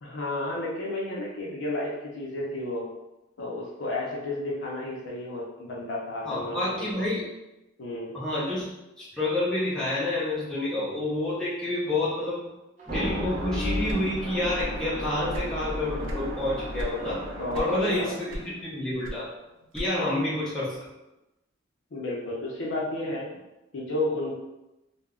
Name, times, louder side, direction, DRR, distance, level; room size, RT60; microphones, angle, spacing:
voice 1, 0.0-2.9 3.4-6.9 7.8-8.2 17.4-18.2 19.9-20.3 21.9-23.3 23.7-24.4, left 2 dB, 70° left, -4 dB, 0.5 m, -32 dB
voice 2, 6.2-7.2 8.1-8.7 9.0-12.5 12.9-17.2 17.5-19.3 19.7-20.8, left 1 dB, 5° left, -9 dB, 0.6 m, -29 dB
sound 1, 12.8-18.4, equal, 40° right, 0.8 m, -33 dB
sound 2, 13.8-14.9 15.1-16.3 16.7-17.0 17.5-18.0 18.3-20.2, equal, 80° right, 0.4 m, -36 dB
2.2 x 2.0 x 3.5 m, 0.97 s
head